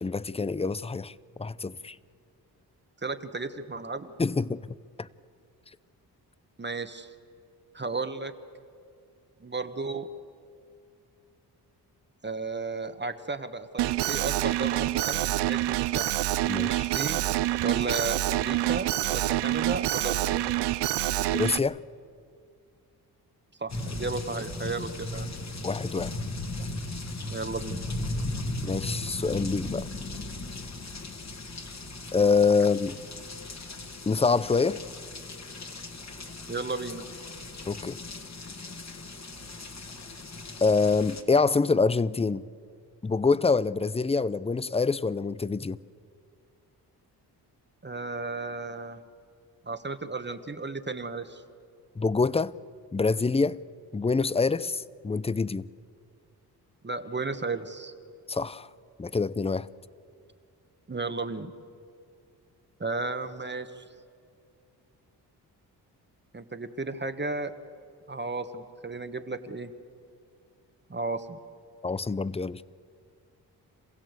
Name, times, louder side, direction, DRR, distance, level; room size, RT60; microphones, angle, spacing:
voice 1, 0.0-1.1 1.4-1.9 4.2-4.7 5.0-5.1 16.5-16.9 21.3-21.8 25.6-26.1 28.6-29.9 32.1-33.0 34.1-34.8 37.7-38.0 40.6-42.4 43.0-45.8 52.0-52.5 52.9-53.6 53.9-55.7 58.3-58.7 59.0-59.7 71.8-72.6, left 4 dB, 15° left, 0.6 m, -25 dB
voice 2, 3.0-4.1 6.6-7.1 7.7-8.3 9.4-10.1 12.2-16.1 16.8-17.2 17.6-20.4 23.6-25.3 27.3-27.9 36.5-37.0 47.8-49.0 49.7-51.4 56.8-57.9 60.9-61.5 62.8-63.8 66.3-67.5 68.1-69.7 70.9-71.4, right 3 dB, 25° right, 1.4 m, -34 dB
Alarm, 13.8-21.6, right 15 dB, 85° right, 0.6 m, -27 dB
sound 1, 23.7-41.2, left 2 dB, 40° left, 2.3 m, -37 dB
27.0 x 16.0 x 8.2 m
cardioid pair, 60°, 41 cm